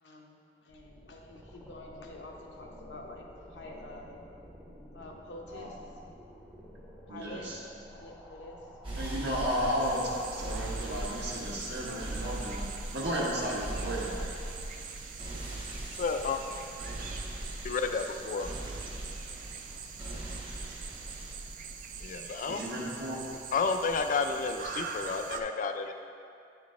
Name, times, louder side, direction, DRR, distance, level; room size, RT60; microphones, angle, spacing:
voice 1, 0.0-3.2 3.5-4.2 4.9-5.8 7.1-7.5 7.9-8.6, left 2 dB, 80° left, 0 dB, 0.8 m, -47 dB
sound 1, 0.7-11.7, equal, ahead, 0.6 m, -51 dB
voice 2, 7.1-7.6 9.0-12.6 12.9-14.2 22.5-23.2, equal, 70° right, -4 dB, 1.2 m, -33 dB
sound 2, 8.8-21.3, right 1 dB, 30° right, 1.0 m, -40 dB
sound 3, 9.8-25.4, right 5 dB, 50° right, 0.4 m, -43 dB
voice 3, 16.0-16.4 17.6-18.5 22.0-22.6 23.5-25.9, left 4 dB, 50° left, 7 dB, 0.3 m, -31 dB
8.6 x 3.8 x 3.6 m, 2.4 s
head